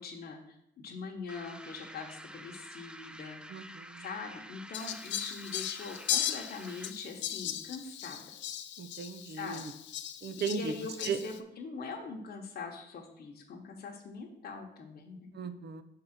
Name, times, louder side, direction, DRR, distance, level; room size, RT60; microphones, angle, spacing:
voice 1, 0.0-3.4 4.0-8.2 9.3-9.6 10.4-15.3, left 4 dB, 50° left, 1 dB, 1.0 m, -42 dB
sound 1, 1.3-7.1, right 1 dB, 5° right, 0.3 m, -49 dB
voice 2, 3.5-4.1 8.8-9.7 10.2-10.7 11.0-11.2 15.3-15.8, right 6 dB, 55° right, 10 dB, 0.6 m, -36 dB
Fowl, 4.7-11.4, left 10 dB, 65° left, 0.5 m, -37 dB
5.2 x 3.8 x 5.8 m, 0.77 s
cardioid pair, 90°, 20 cm